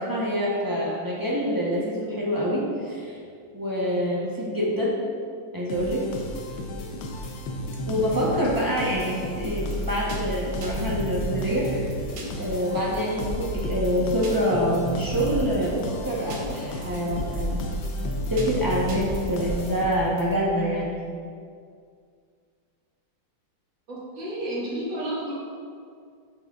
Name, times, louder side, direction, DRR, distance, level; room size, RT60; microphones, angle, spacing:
voice 1, 0.0-3.2 3.5-5.0 5.5-6.0 7.9-11.9 12.4-17.7 18.3-21.0, equal, 20° right, -6 dB, 0.6 m, -26 dB
sound 1, 5.7-20.3, equal, 80° left, 1.4 m, -34 dB
sound 2, 9.4-20.4, right 1 dB, 55° right, 1.3 m, -35 dB
voice 2, 23.9-25.3, right 1 dB, 90° right, -9 dB, 2.7 m, -32 dB
7.8 x 6.0 x 2.4 m, 2.2 s
omnidirectional pair, 2.1 m